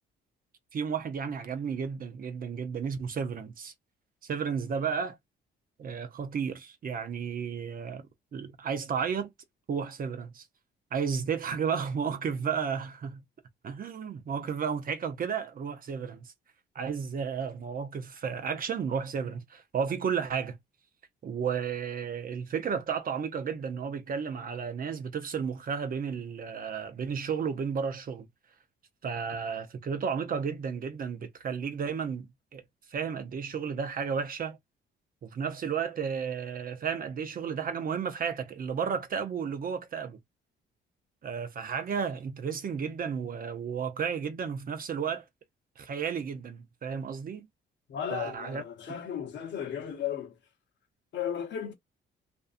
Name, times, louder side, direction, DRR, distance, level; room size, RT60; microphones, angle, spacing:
voice 1, 0.7-3.7 4.2-5.2 5.8-8.1 8.3-9.3 9.7-10.5 10.9-13.2 13.6-16.3 16.7-20.6 21.2-28.3 29.0-32.3 32.5-32.6 32.9-34.6 35.2-40.2 41.2-45.2 45.8-47.5 48.1-48.6, right 6 dB, 45° right, 0.6 m, -33 dB
voice 2, 47.9-50.4 51.1-51.7, left 9 dB, 65° left, 0.9 m, -35 dB
2.6 x 2.3 x 2.5 m
cardioid pair, 90°, 20 cm